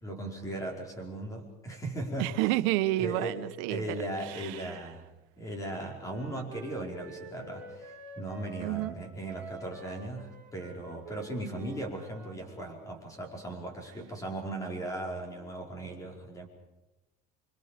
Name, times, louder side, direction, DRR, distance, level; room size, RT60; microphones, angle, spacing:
voice 1, 0.0-2.4 3.0-5.0 5.4-16.5, right 1 dB, 15° left, 2 dB, 5.1 m, -38 dB
voice 2, 2.2-3.8 4.3-4.7 8.6-8.9, right 17 dB, 80° right, 11 dB, 1.2 m, -30 dB
Wind instrument woodwind instrument, 5.6-13.0, right 4 dB, 5° right, 4.2 m, -47 dB
28.5 x 24.5 x 5.2 m, 1.0 s
cardioid pair, 155°, 20 cm